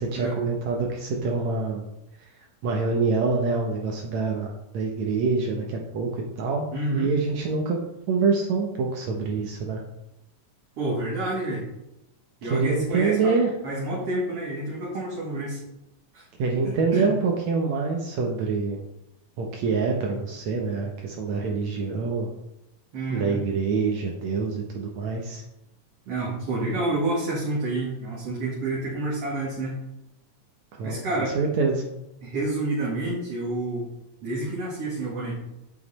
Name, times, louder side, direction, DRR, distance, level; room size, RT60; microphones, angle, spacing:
voice 1, 0.0-1.8 2.6-6.7 6.9-7.8 8.1-9.8 12.4-13.5 16.4-18.8 19.4-22.3 23.1-25.4 30.8-31.0 31.4-31.8, right 4 dB, 70° right, 0 dB, 2.1 m, -25 dB
voice 2, 6.7-7.1 10.8-11.7 12.4-15.6 16.1-16.3 16.6-17.1 22.9-23.4 26.1-29.8 30.8-31.4 32.2-33.9 34.2-35.3, right 2 dB, 50° right, -6 dB, 2.6 m, -29 dB
8.1 x 7.4 x 4.1 m, 0.87 s
omnidirectional pair, 3.7 m